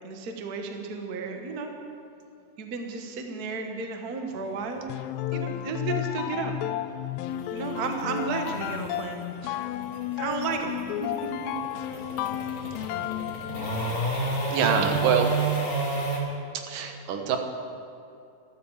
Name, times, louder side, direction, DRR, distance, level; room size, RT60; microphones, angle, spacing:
voice 1, 0.0-1.7 2.6-4.8 5.3-6.5 7.5-9.6 10.2-11.6 11.9-12.1, right 4 dB, 50° right, 4 dB, 1.2 m, -33 dB
sound 1, 4.3-16.2, right 3 dB, 40° left, 3.3 m, -32 dB
sound 2, 4.9-14.1, left 12 dB, 80° left, 1.6 m, -32 dB
voice 2, 14.2-15.4 16.5-17.4, right 6 dB, 85° right, 5 dB, 2.9 m, -26 dB
13.0 x 13.0 x 7.3 m, 2.6 s
omnidirectional pair, 3.7 m